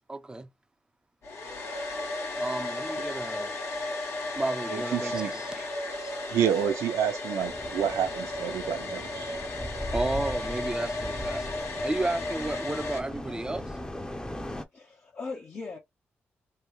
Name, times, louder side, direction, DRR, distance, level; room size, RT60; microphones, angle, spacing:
voice 1, 0.1-0.5 2.3-3.5 4.4-5.7 9.9-13.7, right 2 dB, 15° right, 0.5 m, -32 dB
Domestic sounds home sounds, 1.2-13.0, left 2 dB, 65° left, 1.4 m, -34 dB
voice 2, 4.7-5.3 6.3-9.4, right 9 dB, 80° right, 0.8 m, -29 dB
sound 1, 7.4-14.6, left 1 dB, 15° left, 0.8 m, -39 dB
voice 3, 14.7-15.8, left 4 dB, 45° left, 0.9 m, -39 dB
3.3 x 2.2 x 3.1 m
supercardioid pair, 55°, 5 cm